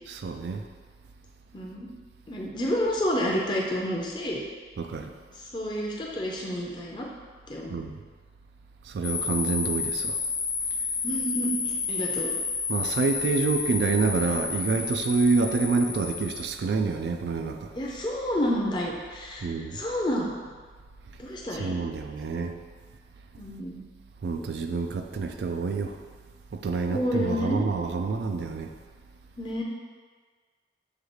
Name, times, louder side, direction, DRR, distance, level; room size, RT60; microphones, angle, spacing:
voice 1, 0.1-0.6 4.8-5.1 7.7-8.0 8.9-10.2 12.7-17.7 19.4-19.8 21.6-22.5 24.2-25.9 26.6-28.7, right 4 dB, 75° right, 6 dB, 0.3 m, -27 dB
voice 2, 1.5-1.9 2.3-4.4 5.4-7.1 7.5-7.9 11.0-12.3 17.7-20.3 21.2-21.7 23.4-23.8 26.9-27.7 29.4-29.6, equal, 25° left, -2 dB, 0.5 m, -29 dB
sound 1, 9.0-16.5, left 4 dB, 85° left, 0.9 m, -30 dB
6.5 x 2.4 x 3.0 m, 1.5 s
head